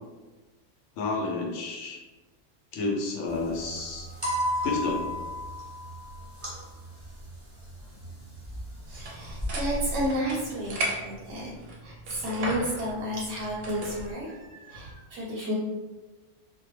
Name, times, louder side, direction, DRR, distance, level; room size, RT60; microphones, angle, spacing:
voice 1, 1.0-2.0 2.7-4.1 4.6-5.1, left 3 dB, 75° left, 0 dB, 0.9 m, -30 dB
sound 1, 3.3-10.2, equal, 15° right, 0.6 m, -35 dB
sound 2, 8.9-14.1, right 1 dB, 65° right, 0.7 m, -37 dB
voice 2, 8.9-10.7 11.0-11.5 11.8-15.6, equal, 85° right, -4 dB, 0.9 m, -31 dB
2.2 x 2.1 x 3.0 m, 1.2 s
omnidirectional pair, 1.2 m